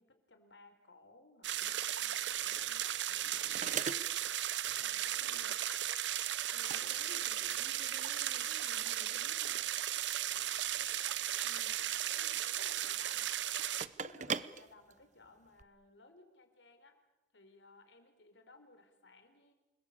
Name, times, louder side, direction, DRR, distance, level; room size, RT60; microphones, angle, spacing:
voice 1, 0.0-4.2 4.8-5.5 10.2-10.5 11.0-13.3 14.0-17.0 17.3-19.5, left 2 dB, 90° left, 7 dB, 4.0 m, -61 dB
sound 1, 1.4-13.9, right 12 dB, 80° right, 0.9 m, -36 dB
sound 2, 2.3-15.6, right 6 dB, 40° right, 0.8 m, -45 dB
voice 2, 6.5-9.6 11.4-11.7, equal, 65° right, 4 dB, 5.3 m, -56 dB
28.5 x 20.5 x 8.6 m, 1.0 s
head